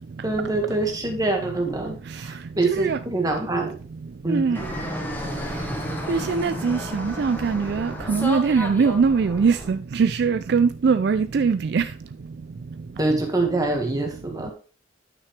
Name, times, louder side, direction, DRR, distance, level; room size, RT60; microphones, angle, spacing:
voice 1, 0.2-3.7 4.2-4.6 13.0-14.5, right 2 dB, 20° right, 1.7 m, -25 dB
voice 2, 2.6-3.0 4.3-4.6 6.1-11.8, right 5 dB, 60° right, 0.4 m, -21 dB
Fixed-wing aircraft airplane, 4.5-9.7, equal, 10° left, 1.4 m, -32 dB
9.6 x 5.9 x 3.3 m
head